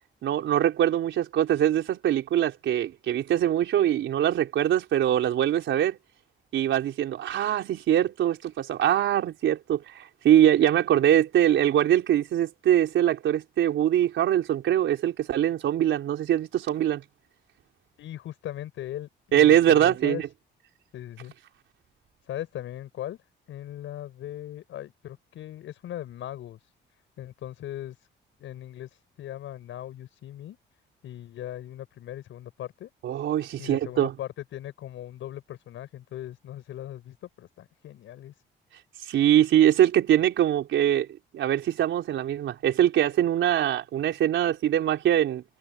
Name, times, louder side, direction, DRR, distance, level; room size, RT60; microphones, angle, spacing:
voice 1, 0.2-6.0 6.5-17.0 19.3-20.3 33.0-34.1 39.0-41.1 41.3-45.4, right 11 dB, 75° right, 4.3 m, -23 dB
voice 2, 18.0-20.2 20.9-21.3 22.2-28.1 28.4-30.6 31.0-32.9 33.6-38.4, left 12 dB, 80° left, 6.6 m, -39 dB
cardioid pair, 90°, 20 cm